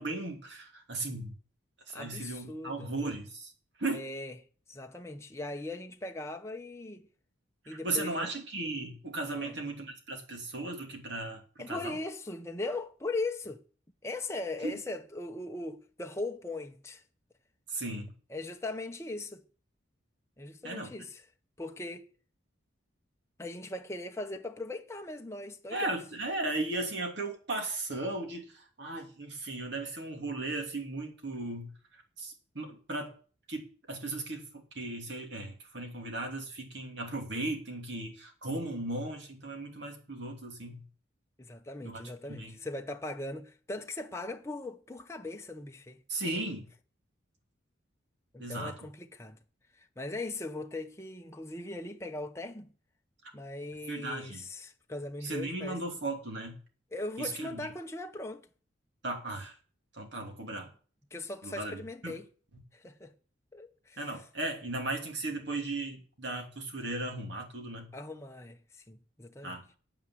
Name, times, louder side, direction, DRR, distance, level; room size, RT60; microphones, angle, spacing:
voice 1, 0.0-1.3 1.9-3.5 3.8-4.1 7.7-12.0 14.6-14.7 17.7-18.1 20.6-20.9 25.7-31.7 32.2-33.1 33.5-34.4 34.7-40.8 41.8-42.0 42.3-42.6 46.1-46.7 48.4-48.7 53.9-54.4 55.2-56.6 57.2-57.7 59.0-59.5 59.9-60.7 61.4-62.2 64.0-67.9 69.4-69.8, right 2 dB, 60° right, 2.9 m, -36 dB
voice 2, 1.9-2.9 3.9-4.4 4.7-7.1 7.7-8.3 9.3-9.6 11.6-13.6 14.0-17.0 18.3-19.4 20.4-21.2 21.6-22.1 23.4-26.0 41.4-46.3 48.3-49.4 49.7-52.7 53.3-55.8 56.9-58.5 61.1-62.3 62.7-63.1 63.5-64.2 67.9-69.6, left 2 dB, 15° left, 0.8 m, -39 dB
9.1 x 8.9 x 7.6 m
head